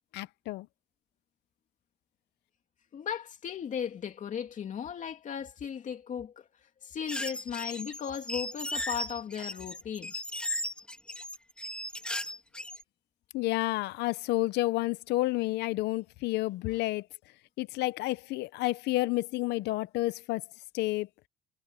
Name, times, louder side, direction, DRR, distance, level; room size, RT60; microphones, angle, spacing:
voice 1, 0.1-0.7 13.3-17.0 17.6-20.4 20.7-21.1, left 18 dB, 80° left, 0.7 m, -30 dB
voice 2, 2.9-6.5 6.8-10.1 16.7-16.8, left 8 dB, 50° left, 2.7 m, -36 dB
sound 1, 7.1-12.8, left 1 dB, 5° left, 1.9 m, -36 dB
cardioid pair, 110°, 17 cm